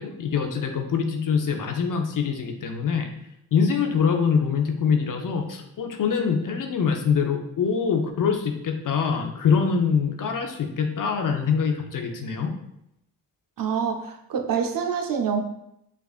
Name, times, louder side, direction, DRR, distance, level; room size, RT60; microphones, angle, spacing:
voice 1, 0.0-3.1 3.5-12.5, left 6 dB, 55° left, 4 dB, 0.7 m, -24 dB
voice 2, 13.6-15.4, right 6 dB, 60° right, 4 dB, 0.6 m, -26 dB
5.0 x 2.4 x 2.4 m, 0.80 s
cardioid pair, 55°, 38 cm